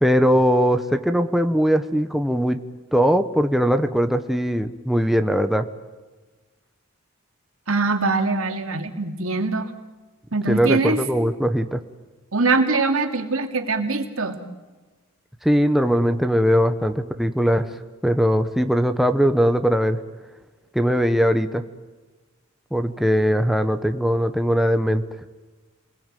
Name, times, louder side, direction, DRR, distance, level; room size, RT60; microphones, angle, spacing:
voice 1, 0.0-2.6 2.9-5.7 10.5-11.8 15.4-17.7 18.0-20.0 20.7-21.6 22.7-25.0, equal, ahead, 7 dB, 1.0 m, -20 dB
voice 2, 7.7-9.7 10.3-11.0 12.3-14.4, right 3 dB, 80° right, 5 dB, 2.9 m, -22 dB
29.0 x 21.5 x 9.2 m, 1.3 s
head